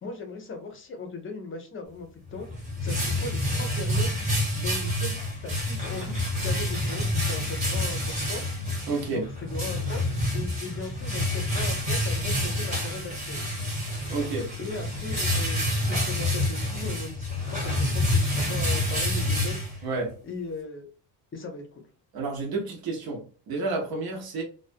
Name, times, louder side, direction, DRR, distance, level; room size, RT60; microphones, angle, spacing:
voice 1, 0.0-2.5 2.8-4.2 4.6-8.4 9.1-10.0 10.3-13.4 14.6-19.6 20.2-20.9 21.3-21.8, left 4 dB, 30° left, 0.6 m, -38 dB
sound 1, 2.3-20.1, left 1 dB, 15° right, 1.0 m, -28 dB
voice 2, 8.9-9.3 14.1-14.5 19.8-20.1 22.1-24.4, right 3 dB, 55° right, 0.8 m, -30 dB
2.4 x 2.2 x 2.5 m
cardioid pair, 145°, 45 cm